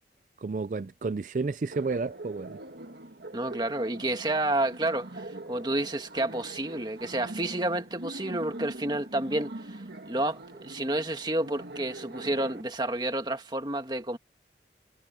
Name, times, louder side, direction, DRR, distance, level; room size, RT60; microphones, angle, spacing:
voice 1, 0.4-2.6, right 4 dB, 45° right, 0.4 m, -31 dB
Laughter, 1.7-12.6, right 1 dB, 65° right, 1.6 m, -43 dB
voice 2, 3.3-14.2, right 1 dB, 25° right, 1.9 m, -30 dB
head